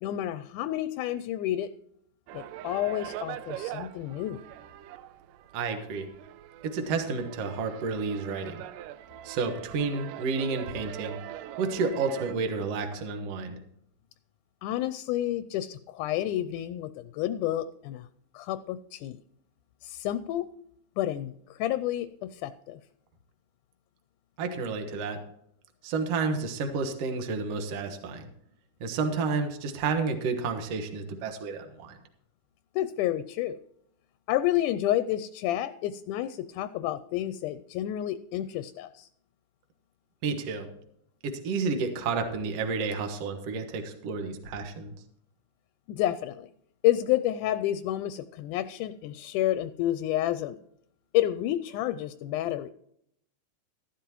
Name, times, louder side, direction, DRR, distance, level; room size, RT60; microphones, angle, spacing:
voice 1, 0.0-1.7 2.3-4.4 14.6-18.1 18.3-19.2 19.8-20.5 21.0-22.8 32.8-33.6 34.3-39.1 45.9-46.5 46.8-50.6 51.1-52.7, left 13 dB, 80° left, 13 dB, 2.0 m, -30 dB
sound 1, 2.3-12.3, right 13 dB, 85° right, 2.2 m, -42 dB
voice 2, 5.5-6.1 6.6-8.6 9.2-13.6 24.4-25.2 25.8-28.3 28.8-32.0 40.2-40.7 41.2-44.9, right 4 dB, 60° right, 5 dB, 2.2 m, -31 dB
14.0 x 11.5 x 3.0 m, 0.71 s
omnidirectional pair, 3.7 m